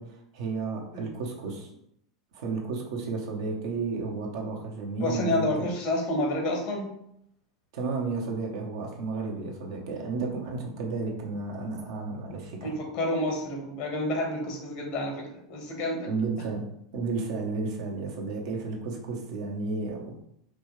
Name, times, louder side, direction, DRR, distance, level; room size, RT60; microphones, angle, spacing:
voice 1, 0.0-1.7 2.3-5.7 7.7-12.7 16.1-16.7 16.9-20.1, right 3 dB, 65° right, 0 dB, 1.0 m, -32 dB
voice 2, 5.0-6.9 12.6-16.1, left 1 dB, 55° left, 1 dB, 1.4 m, -29 dB
4.9 x 2.6 x 3.3 m, 0.74 s
hypercardioid pair, 95°, 3 cm